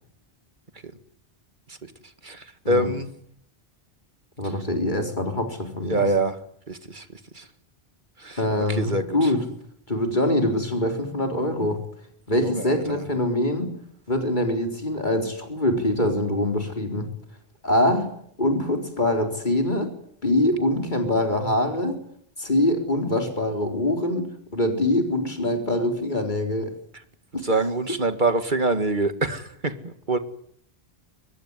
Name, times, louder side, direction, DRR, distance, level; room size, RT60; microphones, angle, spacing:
voice 1, 2.2-3.1 5.9-6.4 6.7-7.1 7.3-7.5 8.2-8.4 8.7-9.3 12.3-13.0 27.4-30.2, right 2 dB, 50° right, 10 dB, 2.2 m, -25 dB
voice 2, 4.4-6.1 8.4-9.4 9.9-11.8 12.3-13.7 14.1-17.1 17.6-18.1 18.4-19.9 20.2-22.0 22.4-26.7, left 1 dB, 50° left, 5 dB, 4.4 m, -24 dB
24.5 x 20.5 x 9.8 m, 0.67 s
omnidirectional pair, 1.1 m